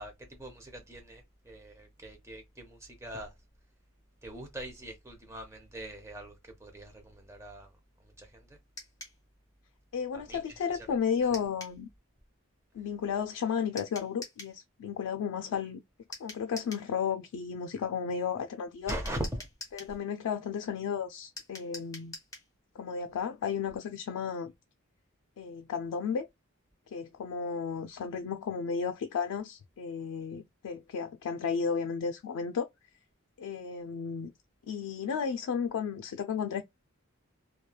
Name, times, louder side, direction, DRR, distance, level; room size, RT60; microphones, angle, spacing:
voice 1, 0.0-3.3 4.2-6.3 6.6-7.7 8.2-8.3 10.3-10.4 18.9-19.3, right 1 dB, 15° right, 0.6 m, -41 dB
sound 1, 8.8-9.2 11.3-11.8 13.8-14.6 16.1-16.9 18.9-20.0 21.4-22.5, left 2 dB, 15° left, 0.8 m, -45 dB
voice 2, 9.9-11.9 12.7-15.8 16.2-18.9 19.7-22.2 22.8-24.5 25.4-26.3 26.9-32.7 33.4-34.3 34.7-36.6, left 6 dB, 85° left, 0.3 m, -33 dB
3.0 x 2.2 x 2.2 m
head